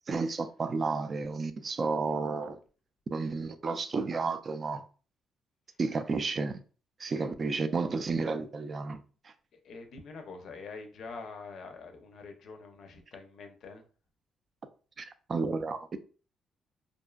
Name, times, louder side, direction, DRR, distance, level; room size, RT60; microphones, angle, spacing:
voice 1, 0.1-2.6 3.1-4.8 5.8-6.6 7.0-9.3 15.0-16.0, right 4 dB, 40° right, 0.3 m, -32 dB
voice 2, 9.5-13.8, left 4 dB, 65° left, 0.4 m, -45 dB
2.5 x 2.3 x 2.2 m
cardioid pair, 90°, 0 cm